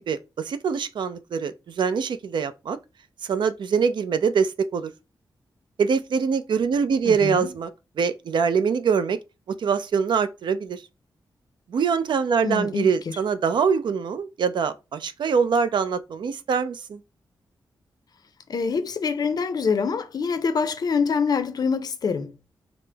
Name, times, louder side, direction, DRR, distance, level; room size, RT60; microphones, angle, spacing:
voice 1, 0.1-2.8 3.2-4.9 5.8-7.7 8.0-9.2 9.6-10.8 11.7-17.0, right 6 dB, 70° right, 0.4 m, -24 dB
voice 2, 7.0-7.5 12.4-13.2 18.5-22.4, left 5 dB, 50° left, 0.5 m, -25 dB
4.9 x 2.0 x 3.3 m
wide cardioid pair, 135°, 8 cm